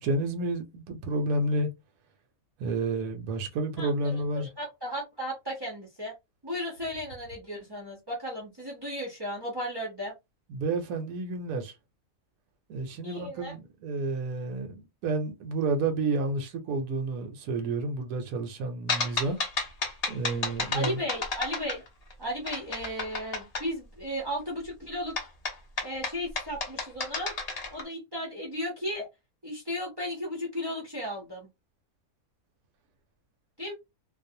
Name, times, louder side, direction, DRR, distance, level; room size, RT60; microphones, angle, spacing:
voice 1, 0.0-1.7 2.6-4.5 10.5-11.7 12.7-19.4 20.1-21.0, right 2 dB, 75° right, 1.0 m, -30 dB
voice 2, 3.8-6.1 6.4-10.1 13.0-13.5 20.7-21.8 22.2-25.3 25.8-27.3 27.7-29.1 29.4-31.5 33.6-33.7, equal, 35° right, 0.4 m, -35 dB
sound 1, 18.9-22.1 22.5-23.7 25.2-27.8, left 3 dB, 55° left, 0.4 m, -31 dB
2.5 x 2.0 x 2.6 m
omnidirectional pair, 1.6 m